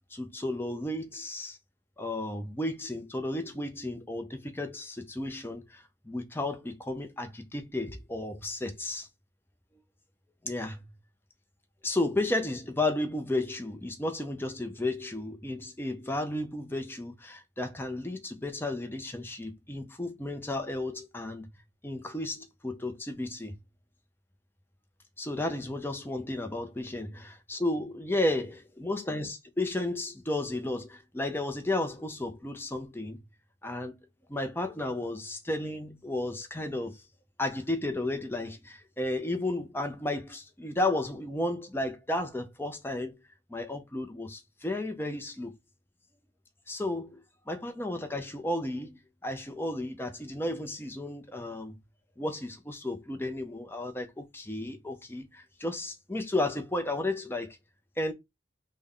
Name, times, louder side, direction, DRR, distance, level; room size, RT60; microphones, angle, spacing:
voice 1, 0.1-1.6 2.0-9.1 10.4-10.8 11.8-21.5 21.8-23.5 25.2-33.2 33.6-33.9 34.3-37.0 37.4-43.2 43.5-45.5 46.7-51.8 52.2-57.6 58.0-58.1, left 2 dB, 10° left, 0.5 m, -33 dB
3.4 x 2.2 x 3.7 m
head